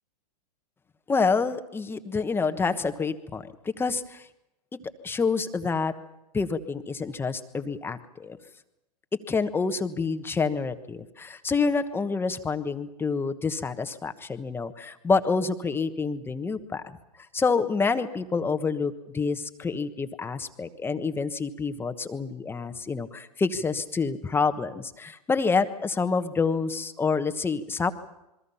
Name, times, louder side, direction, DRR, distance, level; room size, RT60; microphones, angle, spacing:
voice 1, 1.1-3.4 3.8-4.3 5.0-5.9 6.3-8.4 9.3-16.8 17.3-27.9, left 4 dB, 10° left, 9 dB, 1.3 m, -27 dB
27.5 x 22.5 x 5.7 m, 0.91 s
hypercardioid pair, 120°, 21 cm